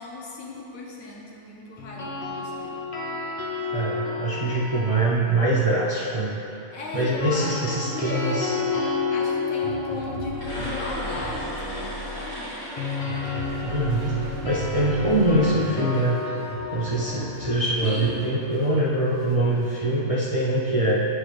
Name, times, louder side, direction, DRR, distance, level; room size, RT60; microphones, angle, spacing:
voice 1, 0.0-2.8 6.7-12.5 17.8-18.4, left 3 dB, 80° left, -3 dB, 1.4 m, -37 dB
sound 1, 1.8-6.0 7.2-19.1, left 4 dB, 35° left, 0.6 m, -32 dB
voice 2, 3.7-6.4 6.9-8.6 13.6-14.1 14.4-16.2 16.7-21.1, right 1 dB, 40° right, -8 dB, 0.5 m, -23 dB
sound 2, 9.6-18.8 19.1-19.9, right 1 dB, 70° right, 1.3 m, -38 dB
sound 3, 10.3-14.5, equal, 50° left, 2.1 m, -36 dB
10.0 x 4.1 x 3.3 m, 2.8 s
omnidirectional pair, 1.4 m